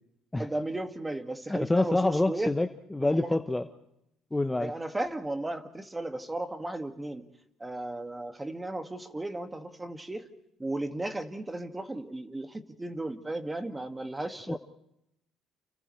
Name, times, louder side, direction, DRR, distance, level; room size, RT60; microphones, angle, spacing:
voice 1, 0.3-2.5 3.1-3.4 4.6-7.2 7.6-10.3 10.6-14.6, right 2 dB, 15° right, 7 dB, 2.0 m, -35 dB
voice 2, 1.5-3.7 4.3-4.7 14.5-14.6, left 2 dB, 10° left, 8 dB, 0.9 m, -27 dB
29.5 x 29.5 x 3.3 m, 0.81 s
supercardioid pair, 90°, 0 cm